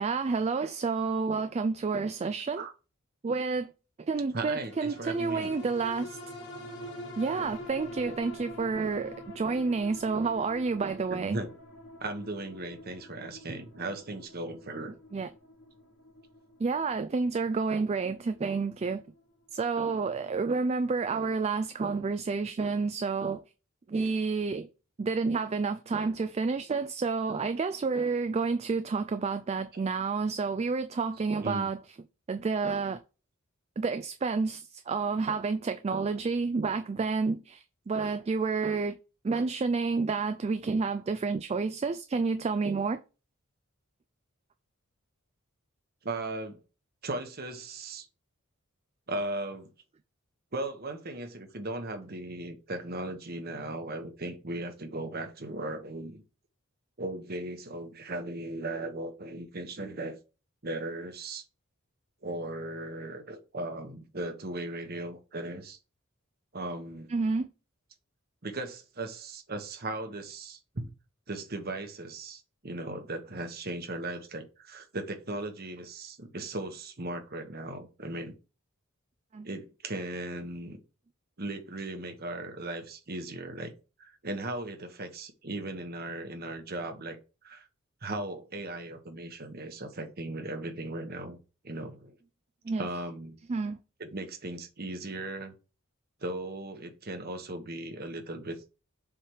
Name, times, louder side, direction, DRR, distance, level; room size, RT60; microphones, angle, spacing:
voice 1, 0.0-2.7 3.2-3.7 4.0-6.2 7.2-11.4 15.1-15.3 16.6-19.0 19.5-23.4 23.9-24.7 25.0-31.8 32.3-33.0 33.8-39.0 39.2-43.0 67.1-67.5 79.3-79.5 92.6-92.9 93.5-93.8, right 4 dB, 30° right, 0.3 m, -29 dB
voice 2, 4.3-5.5 11.1-11.5 12.0-14.9 18.0-18.2 29.7-29.8 31.4-31.7 46.0-46.6 47.0-48.1 49.1-49.7 50.5-56.2 57.0-60.2 60.6-61.4 62.2-65.8 66.5-67.1 68.4-70.9 71.3-78.4 79.4-80.8 81.4-83.7 84.0-87.2 87.4-87.7 88.0-91.4 91.6-92.2 92.8-93.4 94.0-95.5 96.2-98.6, right 2 dB, 45° right, 1.1 m, -37 dB
sound 1, 4.5-19.2 19.6-19.7, left 1 dB, 60° left, 1.5 m, -46 dB
7.2 x 3.4 x 4.6 m
head